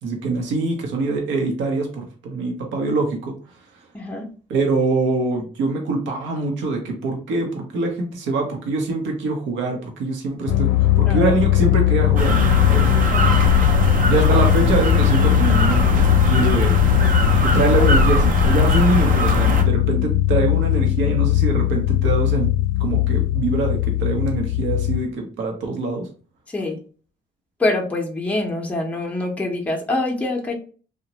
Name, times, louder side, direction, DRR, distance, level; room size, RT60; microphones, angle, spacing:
voice 1, 0.0-3.4 4.5-12.3 12.7-12.9 14.1-16.0 16.2-16.8 17.4-22.5 22.8-26.1, right 3 dB, 85° right, 2 dB, 0.7 m, -24 dB
voice 2, 3.9-4.3 11.1-11.3 13.1-13.3 26.5-26.8 27.6-30.5, left 2 dB, 5° left, 1 dB, 0.5 m, -25 dB
sound 1, 10.5-25.0, left 15 dB, 70° left, 0.4 m, -19 dB
sound 2, 12.2-19.6, right 1 dB, 45° right, 0.5 m, -21 dB
2.9 x 2.1 x 2.7 m, 0.39 s
cardioid pair, 120°, 19 cm